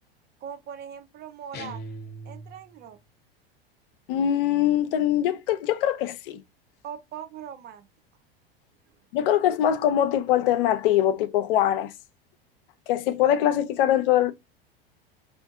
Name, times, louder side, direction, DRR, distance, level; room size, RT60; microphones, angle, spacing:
voice 1, 0.4-1.8 2.2-3.0 6.8-7.9, right 9 dB, 35° right, 0.5 m, -40 dB
sound 1, 1.5-2.9, right 1 dB, 35° left, 0.7 m, -40 dB
voice 2, 4.1-6.4 9.1-11.9 12.9-14.3, left 11 dB, 65° left, 0.5 m, -22 dB
2.6 x 2.4 x 2.3 m
hypercardioid pair, 90°, 30 cm